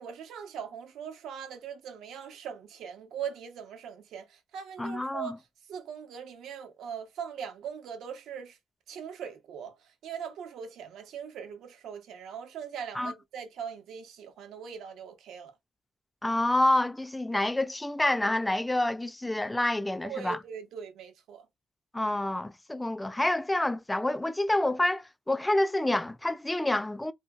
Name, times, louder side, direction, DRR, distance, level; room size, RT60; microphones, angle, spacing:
voice 1, 0.0-5.4 5.7-8.6 8.9-15.5 20.0-21.5, right 7 dB, 80° right, 0.7 m, -41 dB
voice 2, 4.8-5.4 12.9-13.1 16.2-20.4 21.9-27.1, left 1 dB, 10° left, 0.3 m, -28 dB
2.7 x 2.7 x 2.3 m
cardioid pair, 90°, 0 cm